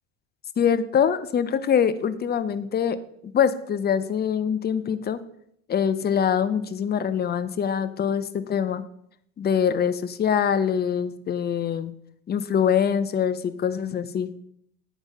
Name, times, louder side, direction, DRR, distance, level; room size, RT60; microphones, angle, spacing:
voice 1, 0.6-5.2 5.7-8.8 9.4-11.9 12.3-14.3, left 8 dB, 25° left, 13 dB, 0.6 m, -24 dB
9.3 x 4.6 x 5.4 m, 0.72 s
hypercardioid pair, 90°, 38 cm